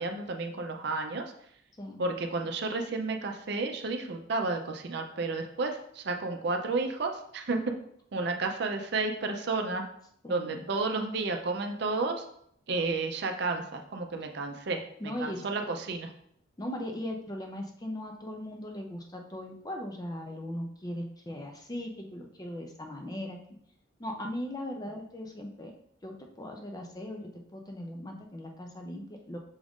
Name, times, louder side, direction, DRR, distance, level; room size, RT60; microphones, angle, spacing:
voice 1, 0.0-1.3 2.0-7.7 8.1-9.8 10.3-12.3 12.7-16.1, right 3 dB, 55° right, 5 dB, 0.5 m, -32 dB
voice 2, 10.2-10.6 15.0-15.7 16.6-23.4 24.0-25.7 26.0-29.4, left 1 dB, 20° left, 2 dB, 0.4 m, -39 dB
6.2 x 2.5 x 3.5 m, 0.68 s
head